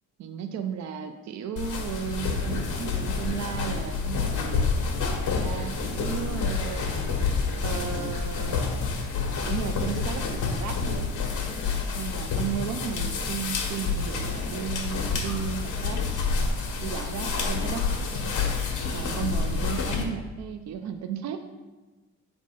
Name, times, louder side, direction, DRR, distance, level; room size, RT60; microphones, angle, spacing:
voice 1, 0.2-4.7 5.3-6.9 7.6-8.7 9.4-11.2 11.9-16.0 16.8-17.9 18.9-21.4, right 8 dB, 65° right, 7 dB, 0.6 m, -34 dB
sound 1, 1.6-20.0, left 4 dB, 80° left, 1.3 m, -28 dB
7.4 x 3.6 x 5.1 m, 1.2 s
cardioid pair, 90°, 30 cm